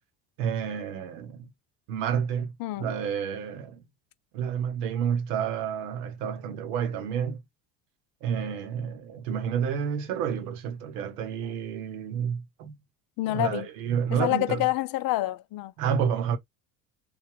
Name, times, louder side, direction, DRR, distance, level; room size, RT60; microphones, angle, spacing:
voice 1, 0.4-1.5 1.9-2.5 2.8-3.8 4.3-7.4 8.2-12.8 13.3-14.6 15.8-16.4, right 7 dB, 75° right, 1.0 m, -30 dB
voice 2, 2.6-2.9 13.2-13.7 14.1-15.7, left 16 dB, 50° left, 0.5 m, -27 dB
3.3 x 2.2 x 3.6 m
hypercardioid pair, 65°, 48 cm